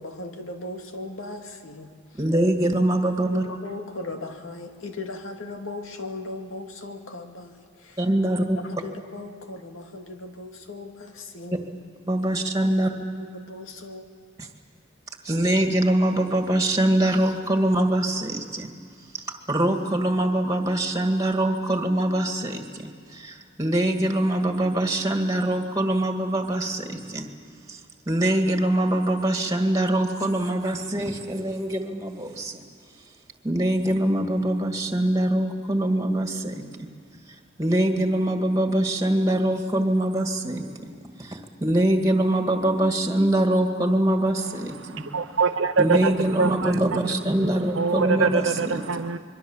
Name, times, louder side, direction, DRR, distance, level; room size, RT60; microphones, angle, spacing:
voice 1, 0.0-1.9 3.2-7.5 8.4-8.5 8.8-11.6 12.7-12.8 13.3-14.0, left 2 dB, 90° left, 2.2 m, -37 dB
voice 2, 2.2-3.4 8.0-8.6 12.1-12.9 14.4-14.5 15.2-18.7 19.1-27.3 27.7-27.8 28.1-32.6 33.4-36.6 37.6-40.9 41.2-45.0 45.8-49.0, right 1 dB, 15° right, 1.9 m, -23 dB
voice 3, 45.1-46.1 46.4-46.7 47.0-47.1 47.8-49.2, right 5 dB, 75° right, 0.8 m, -23 dB
26.0 x 22.5 x 7.3 m
head